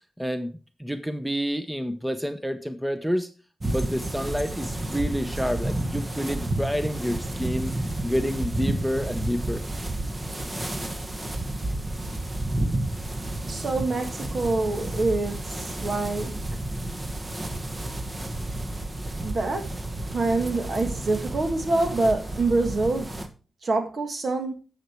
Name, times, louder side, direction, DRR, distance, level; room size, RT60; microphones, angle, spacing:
voice 1, 0.2-0.5 0.8-3.3 3.7-7.7 8.0-9.7, equal, 5° right, 0.9 m, -28 dB
sound 1, 3.6-23.3, right 1 dB, 25° right, 1.3 m, -31 dB
voice 2, 13.5-16.3 19.1-19.7 20.1-23.1 23.6-24.5, right 3 dB, 55° right, 1.9 m, -26 dB
9.9 x 7.0 x 4.6 m
cardioid pair, 75°, 0 cm